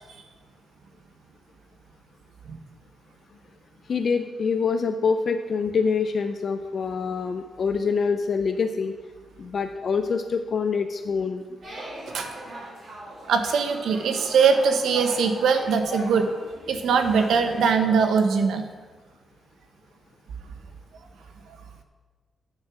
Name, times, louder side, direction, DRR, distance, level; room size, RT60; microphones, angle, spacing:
voice 1, 3.9-9.0 9.4-11.4, left 5 dB, 40° left, 7 dB, 0.4 m, -25 dB
sound 1, 11.6-18.0, equal, 40° right, 2.8 m, -39 dB
voice 2, 13.3-16.3 16.7-18.6, right 5 dB, 80° right, 7 dB, 0.9 m, -21 dB
9.0 x 7.0 x 6.0 m, 1.4 s
wide cardioid pair, 180°, 0 cm